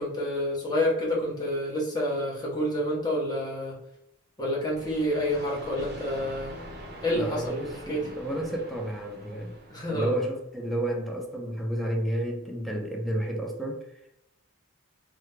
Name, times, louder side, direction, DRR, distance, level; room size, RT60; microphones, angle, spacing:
voice 1, 0.0-3.8 4.4-6.6 7.0-8.1 9.7-10.2, left 1 dB, 20° left, 1.0 m, -28 dB
sound 1, 4.7-10.4, equal, 50° right, 0.7 m, -44 dB
voice 2, 7.1-9.5 9.9-13.9, right 1 dB, ahead, 0.5 m, -31 dB
3.4 x 2.2 x 3.2 m
head